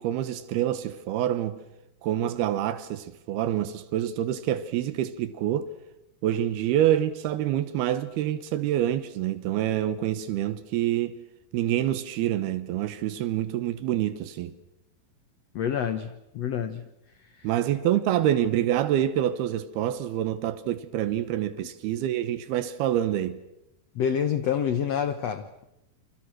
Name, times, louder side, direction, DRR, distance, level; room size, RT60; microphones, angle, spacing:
voice 1, 0.0-1.6 2.0-5.7 6.2-11.2 11.5-14.5 17.4-23.4, right 12 dB, 85° right, 3.1 m, -26 dB
voice 2, 15.5-16.9 17.2-17.5 23.9-25.6, left 8 dB, 70° left, 1.6 m, -28 dB
29.5 x 25.5 x 6.4 m
omnidirectional pair, 4.4 m